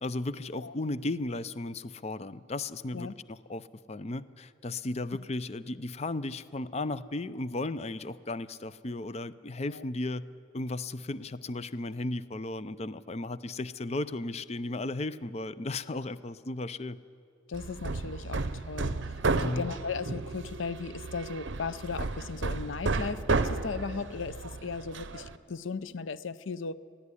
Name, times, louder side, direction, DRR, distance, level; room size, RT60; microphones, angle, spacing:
voice 1, 0.0-10.3 10.5-17.0 19.4-19.7, left 2 dB, 30° left, 15 dB, 0.5 m, -35 dB
voice 2, 17.5-19.0 19.3-26.7, left 4 dB, 75° left, 15 dB, 0.6 m, -37 dB
Hammer, 17.5-25.4, right 3 dB, 65° right, 0.7 m, -33 dB
20.5 x 13.0 x 9.9 m, 2.5 s
head